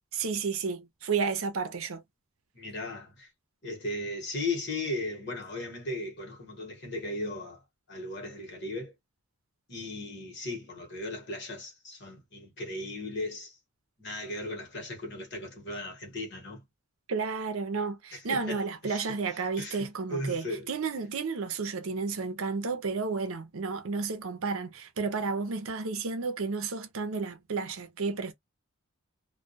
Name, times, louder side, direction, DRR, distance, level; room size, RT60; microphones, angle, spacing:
voice 1, 0.1-2.0 17.1-28.3, right 4 dB, 65° right, 0.6 m, -32 dB
voice 2, 2.5-3.3 3.6-7.6 7.9-8.9 9.7-13.6 14.0-16.6 18.1-19.0 19.6-20.7, left 2 dB, 50° left, 1.1 m, -36 dB
2.2 x 2.2 x 2.7 m
head